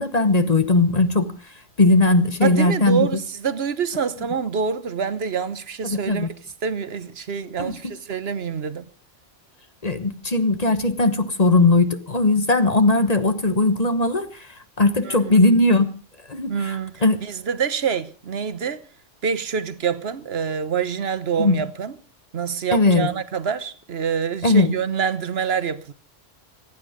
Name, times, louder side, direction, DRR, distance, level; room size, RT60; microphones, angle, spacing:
voice 1, 0.0-1.3 1.8-3.1 5.8-6.3 7.6-7.7 9.8-14.5 14.8-15.9 16.3-16.8 17.0-17.2 21.4-21.6 22.7-23.1 24.4-24.7, left 2 dB, 35° left, 1.3 m, -18 dB
voice 2, 2.4-6.3 6.6-8.8 15.0-15.4 16.5-18.8 19.2-21.9 22.3-25.9, right 7 dB, 60° right, 1.2 m, -26 dB
26.5 x 9.6 x 5.1 m
omnidirectional pair, 1.2 m